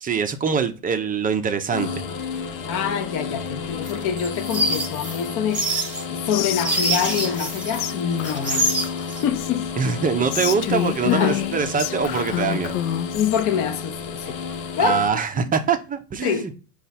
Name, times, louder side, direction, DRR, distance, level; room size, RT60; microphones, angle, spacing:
voice 1, 0.0-2.0 9.8-12.8 14.8-16.5, right 6 dB, 20° right, 0.4 m, -23 dB
sound 1, 1.7-15.1, left 6 dB, 60° left, 0.9 m, -31 dB
voice 2, 2.6-8.9 9.2-9.7 11.0-11.4 13.1-14.4 14.7-15.5 16.2-16.5, left 8 dB, 40° left, 0.5 m, -26 dB
sound 2, 3.8-7.9 8.2-9.2, right 1 dB, 5° right, 0.9 m, -26 dB
Whispering, 6.3-7.5 7.8-7.9 8.2-9.7 10.3-13.4, left 13 dB, 85° left, 0.6 m, -29 dB
5.3 x 2.4 x 4.1 m
supercardioid pair, 115°, 47 cm